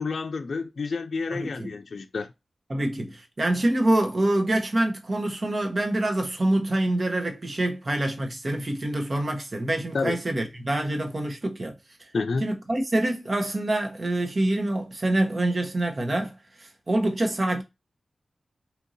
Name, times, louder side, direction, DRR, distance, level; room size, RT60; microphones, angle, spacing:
voice 1, 0.0-2.3 9.9-10.2 12.1-12.4, left 4 dB, 75° left, 0.4 m, -29 dB
voice 2, 1.3-1.7 2.7-11.7 12.4-16.3 16.6-17.6, right 1 dB, 45° right, 1.0 m, -26 dB
4.4 x 2.7 x 2.6 m
cardioid pair, 55°, 0 cm